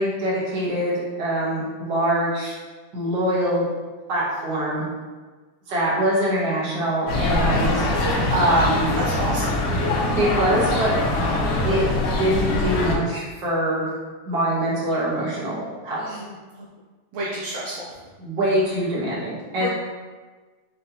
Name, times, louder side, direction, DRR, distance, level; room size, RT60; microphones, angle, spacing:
voice 1, 0.0-2.5 2.9-3.6 4.1-4.8 5.7-7.8 8.3-8.9 10.2-10.9 11.6-11.9 12.2-13.9 14.3-16.2 18.2-19.7, right 1 dB, 50° right, -6 dB, 1.3 m, -23 dB
sound 1, 7.1-13.0, left 2 dB, 90° left, 2.3 m, -23 dB
voice 2, 8.4-9.5 16.0-16.3 17.1-17.9 19.6-19.7, right 1 dB, 75° right, -4 dB, 1.7 m, -29 dB
6.5 x 2.7 x 2.8 m, 1.4 s
omnidirectional pair, 3.4 m